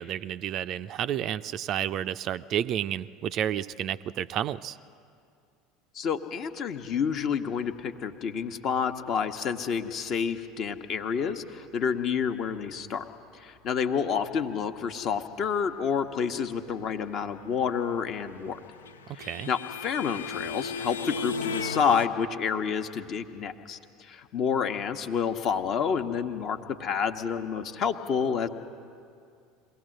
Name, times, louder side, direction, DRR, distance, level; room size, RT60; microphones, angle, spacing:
voice 1, 0.0-4.8 19.1-19.5, right 10 dB, 45° right, 13 dB, 0.4 m, -31 dB
voice 2, 5.9-13.1 13.3-18.6 19.1-28.5, left 6 dB, 45° left, 7 dB, 1.1 m, -29 dB
sound 1, 18.2-22.1, left 5 dB, 75° left, 0.5 m, -35 dB
23.0 x 17.5 x 7.7 m, 2.4 s
figure-of-eight pair, 70°, 0 cm